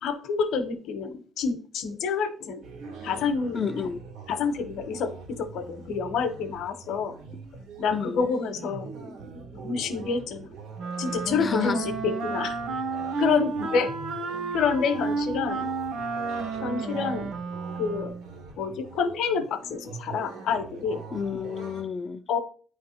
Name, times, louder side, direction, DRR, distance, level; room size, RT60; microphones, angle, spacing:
voice 1, 0.0-2.6 3.0-3.6 4.3-7.1 7.8-8.9 9.6-10.5 11.0-12.5 13.2-13.9 14.5-15.7 16.6-17.3 17.8-18.1 18.6-21.0 21.4-21.5 22.3-22.4, left 5 dB, 70° left, 10 dB, 0.8 m, -28 dB
sound 1, 2.6-21.8, right 4 dB, 90° right, 1.7 m, -42 dB
voice 2, 3.5-4.0 7.9-8.3 11.4-11.8 21.1-22.2, left 6 dB, 30° left, 13 dB, 0.4 m, -30 dB
Wind instrument woodwind instrument, 10.8-18.3, right 4 dB, 55° right, 0.9 m, -31 dB
8.9 x 3.2 x 4.3 m, 0.43 s
cardioid pair, 145°, 0 cm